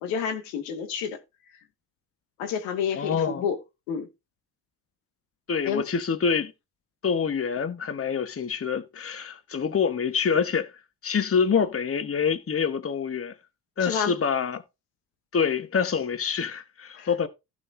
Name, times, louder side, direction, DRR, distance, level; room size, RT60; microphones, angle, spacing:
voice 1, 0.0-1.2 2.4-3.6 3.9-4.1 5.6-5.8 13.8-14.2 17.0-17.1, left 7 dB, 75° left, 2.3 m, -29 dB
voice 2, 2.9-3.4 5.5-6.5 7.0-10.7 11.0-13.3 13.8-14.6 15.3-17.3, left 6 dB, 30° left, 1.5 m, -26 dB
16.0 x 6.2 x 2.8 m
hypercardioid pair, 60°, 46 cm